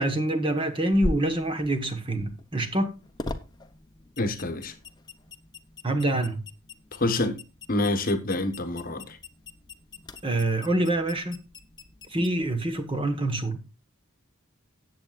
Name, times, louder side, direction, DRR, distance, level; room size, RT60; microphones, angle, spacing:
voice 1, 0.0-2.9 5.8-6.4 10.2-11.4 12.1-13.6, right 1 dB, 25° right, 1.2 m, -26 dB
sound 1, 0.9-13.2, left 1 dB, 20° left, 0.8 m, -41 dB
voice 2, 4.2-4.7 6.9-7.4 7.7-9.2, left 2 dB, 40° left, 1.1 m, -27 dB
18.5 x 7.8 x 2.4 m
head